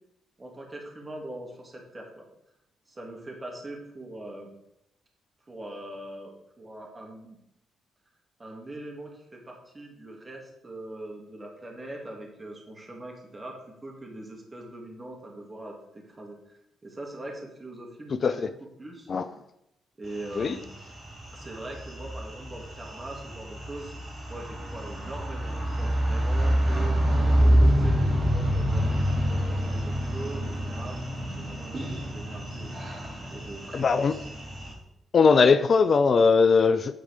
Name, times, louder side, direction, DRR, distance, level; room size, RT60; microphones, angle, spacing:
voice 1, 0.4-2.2 2.9-4.5 5.5-7.4 8.4-13.5 13.8-18.5 18.8-19.1 20.0-20.7 21.3-23.9 24.3-27.0 27.4-32.9 33.3-34.2, right 1 dB, 30° right, 0 dB, 2.6 m, -42 dB
sound 1, 20.1-34.7, equal, 45° right, 3.6 m, -27 dB
voice 2, 33.7-34.1 35.1-36.9, left 5 dB, 50° left, 11 dB, 0.4 m, -20 dB
9.7 x 4.7 x 5.1 m, 0.83 s
hypercardioid pair, 45°, 0 cm